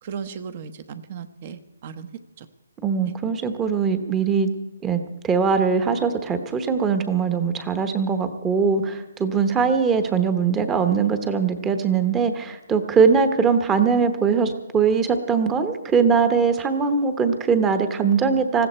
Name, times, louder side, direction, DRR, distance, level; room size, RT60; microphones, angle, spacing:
voice 1, 0.0-2.1 2.4-2.5, right 7 dB, 35° right, 12 dB, 1.0 m, -36 dB
voice 2, 2.8-4.5 4.8-18.7, right 5 dB, 10° right, 9 dB, 1.1 m, -21 dB
20.0 x 15.0 x 4.4 m, 1.1 s
hypercardioid pair, 160°, 0 cm